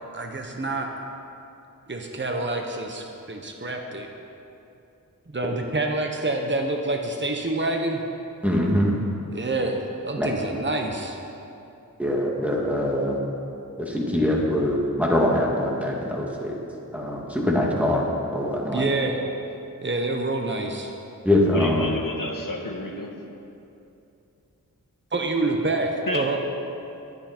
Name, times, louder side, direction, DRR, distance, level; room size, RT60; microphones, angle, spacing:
voice 1, 0.1-0.9 1.9-4.1 5.3-8.0 9.3-9.8 10.0-11.2 18.7-19.2 19.8-20.9 25.1-26.4, right 2 dB, 30° right, 2 dB, 1.2 m, -27 dB
voice 2, 8.4-9.0 10.2-10.3 12.0-13.2 13.8-16.6 16.9-18.1 18.3-18.9 21.2-21.9, left 1 dB, 5° right, -3 dB, 2.3 m, -23 dB
voice 3, 21.5-23.1 26.1-26.4, left 2 dB, 65° left, 0 dB, 2.0 m, -30 dB
22.0 x 8.7 x 4.5 m, 2.7 s
wide cardioid pair, 50°, 35 cm